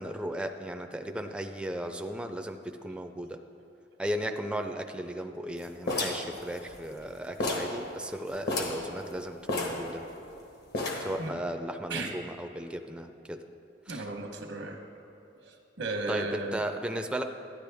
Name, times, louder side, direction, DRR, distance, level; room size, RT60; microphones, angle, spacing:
voice 1, 0.0-3.4 4.0-10.1 11.0-13.4 13.9-14.1 16.1-17.2, equal, 5° right, 5 dB, 0.4 m, -36 dB
sound 1, 5.9-7.1 7.4-7.8 8.1-8.2 8.4-8.9 9.5-10.3 10.7-11.2, left 2 dB, 60° left, 1.2 m, -31 dB
voice 2, 13.9-14.8 15.4-16.6, right 3 dB, 90° right, 3 dB, 1.0 m, -35 dB
12.0 x 9.7 x 3.4 m, 2.7 s
head